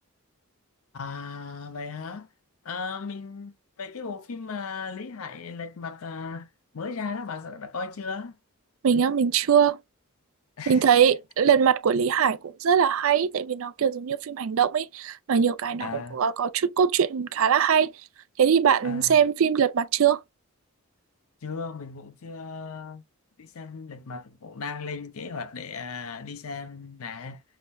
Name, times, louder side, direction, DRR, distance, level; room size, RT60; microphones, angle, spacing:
voice 1, 0.9-2.3 2.6-8.4 10.6-11.0 15.8-16.2 18.8-19.2 21.4-23.0 23.4-27.4, left 4 dB, 75° left, 0.6 m, -36 dB
voice 2, 8.8-9.8 10.7-17.9 18.4-20.2, right 7 dB, 70° right, 0.4 m, -22 dB
5.7 x 2.1 x 2.3 m
head